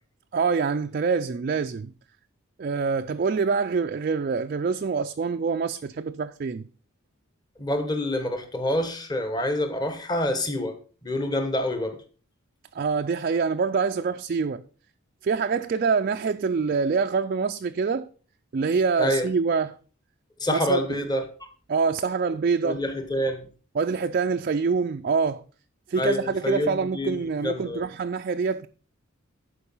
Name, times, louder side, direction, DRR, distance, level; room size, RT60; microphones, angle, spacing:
voice 1, 0.3-1.9 2.6-6.7 12.7-14.6 15.2-18.1 18.5-19.8 20.5-20.8 21.7-22.8 23.8-25.4 25.9-28.7, right 5 dB, 40° right, 0.3 m, -25 dB
voice 2, 7.6-10.8 11.0-12.0 19.0-19.3 20.4-21.2 22.6-23.5 26.0-27.2 27.4-27.8, left 1 dB, 20° left, 1.1 m, -27 dB
11.5 x 4.7 x 5.5 m
head